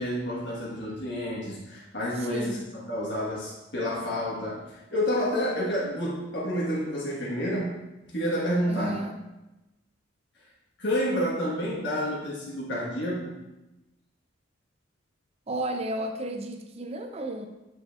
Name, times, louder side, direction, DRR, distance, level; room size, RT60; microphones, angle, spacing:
voice 1, 0.0-7.8 8.1-9.0 10.8-13.4, equal, 60° left, -6 dB, 1.3 m, -29 dB
voice 2, 2.1-2.7 8.7-9.2 15.5-17.5, right 1 dB, 30° right, 5 dB, 0.5 m, -33 dB
7.6 x 6.3 x 2.4 m, 0.99 s
head